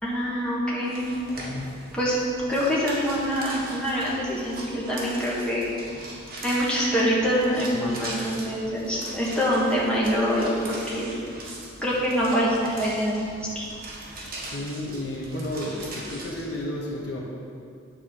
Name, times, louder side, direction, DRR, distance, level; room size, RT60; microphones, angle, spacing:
voice 1, 0.0-1.1 1.9-2.2 2.5-5.7 6.4-11.1 11.8-13.3 13.5-13.6, equal, 5° left, -7 dB, 1.5 m, -25 dB
sound 1, 0.8-16.6, right 1 dB, 50° right, 1.4 m, -40 dB
voice 2, 7.5-8.0 14.1-17.2, left 1 dB, 60° left, -2 dB, 1.2 m, -33 dB
9.4 x 4.0 x 6.4 m, 2.3 s
head